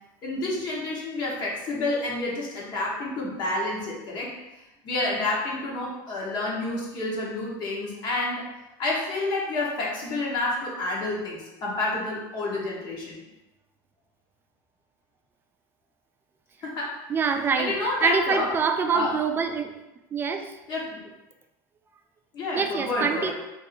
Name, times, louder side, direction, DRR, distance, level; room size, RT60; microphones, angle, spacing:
voice 1, 0.2-4.3 4.8-8.5 8.8-13.2 16.6-17.0 17.6-18.5 18.9-19.1 20.7-21.1 22.3-23.3, left 2 dB, 45° left, -4 dB, 0.9 m, -29 dB
voice 2, 17.1-19.7 20.1-20.6 22.5-23.3, right 5 dB, 20° right, 6 dB, 0.3 m, -25 dB
2.6 x 2.5 x 4.1 m, 0.99 s
supercardioid pair, 120°, 10 cm